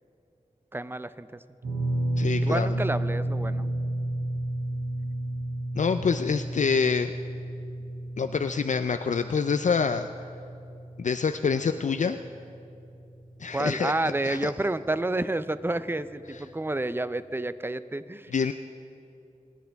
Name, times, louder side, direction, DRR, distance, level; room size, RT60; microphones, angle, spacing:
voice 1, 0.7-1.3 2.4-3.7 13.5-18.5, right 2 dB, 15° right, 13 dB, 0.5 m, -30 dB
sound 1, 1.6-13.9 14.1-14.4 16.0-16.1, right 1 dB, 85° right, 2.1 m, -32 dB
voice 2, 2.2-2.7 5.7-7.1 8.2-10.1 11.0-12.2 13.4-13.9 14.2-14.5 18.3-18.5, left 5 dB, 65° left, 8 dB, 0.4 m, -26 dB
21.0 x 10.5 x 3.5 m, 2.6 s
cardioid pair, 40°, 14 cm